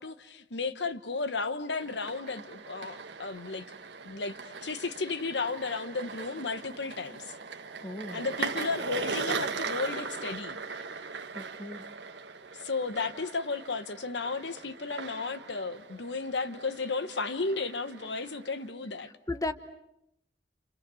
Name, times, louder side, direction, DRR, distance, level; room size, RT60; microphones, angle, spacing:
voice 1, 0.0-3.7 4.0-7.3 8.1-10.6 12.6-19.1, left 4 dB, 70° left, 1.2 m, -34 dB
sound 1, 1.7-18.7, right 5 dB, 70° right, 1.4 m, -39 dB
voice 2, 7.8-8.2 11.3-11.8 19.3-19.5, left 2 dB, 20° left, 1.2 m, -35 dB
29.0 x 29.0 x 7.0 m
head